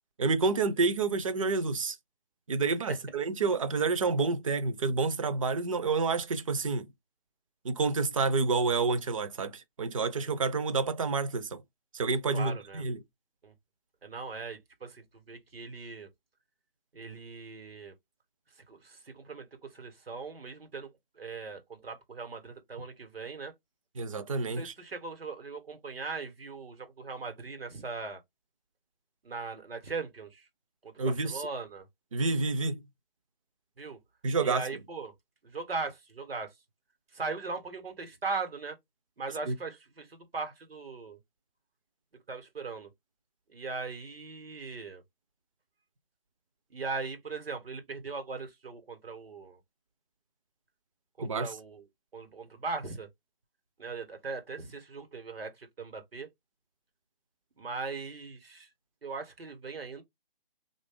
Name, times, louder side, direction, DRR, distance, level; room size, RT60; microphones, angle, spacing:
voice 1, 0.2-2.0 2.5-6.9 7.6-11.6 11.9-13.0 24.0-24.7 31.0-31.4 32.1-32.8 34.2-34.6 39.5-39.6 51.2-51.5, right 4 dB, 35° right, 0.5 m, -29 dB
voice 2, 12.3-12.8 13.4-13.5 14.0-16.1 16.9-17.9 18.7-20.9 21.1-23.5 24.4-28.2 29.2-30.5 30.8-31.9 33.8-34.0 34.4-35.1 35.4-36.5 37.1-38.8 39.2-41.2 42.3-42.9 43.5-45.0 46.7-49.6 51.2-51.8 52.1-53.1 53.8-56.3 57.6-58.7 59.0-60.0, right 4 dB, 85° right, 1.3 m, -39 dB
3.4 x 2.6 x 3.5 m
hypercardioid pair, 155°, 29 cm